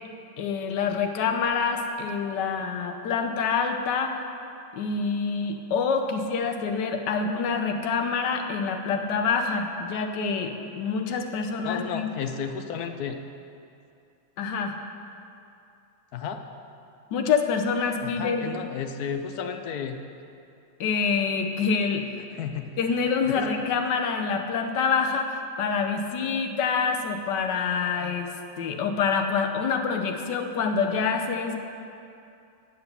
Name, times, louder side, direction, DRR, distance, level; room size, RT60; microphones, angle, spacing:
voice 1, 0.4-4.2 4.7-12.1 14.4-14.8 17.1-18.5 20.8-22.1 22.8-28.3 28.6-31.6, left 5 dB, 90° left, 4 dB, 1.4 m, -26 dB
voice 2, 11.6-13.2 16.1-16.4 18.0-20.0 22.3-22.7 23.3-23.4, left 7 dB, 70° left, 6 dB, 1.1 m, -32 dB
9.4 x 8.0 x 6.8 m, 2.6 s
omnidirectional pair, 1.9 m